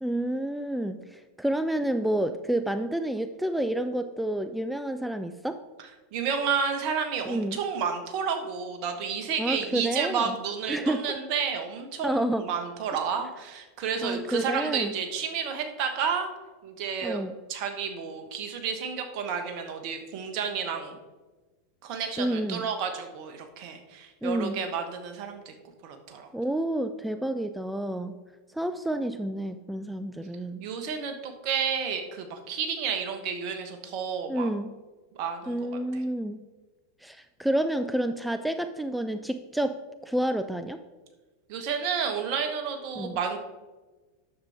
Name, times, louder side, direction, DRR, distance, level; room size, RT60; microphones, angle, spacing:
voice 1, 0.0-5.6 7.3-7.6 9.4-10.3 10.7-11.0 12.0-12.5 14.0-14.9 17.0-17.3 22.2-22.7 24.2-24.6 26.3-28.2 28.5-30.6 34.3-34.7 35.5-36.4 37.0-39.8 40.0-40.8 43.0-43.2, right 1 dB, 5° right, 9 dB, 0.4 m, -29 dB
voice 2, 6.1-16.3 16.6-17.2 17.5-21.0 21.8-25.5 25.8-26.3 30.6-34.5 35.2-35.7 35.9-36.0 41.5-43.4, right 6 dB, 50° right, 6 dB, 1.2 m, -31 dB
9.4 x 6.8 x 3.5 m, 1.2 s
figure-of-eight pair, 85°, 0 cm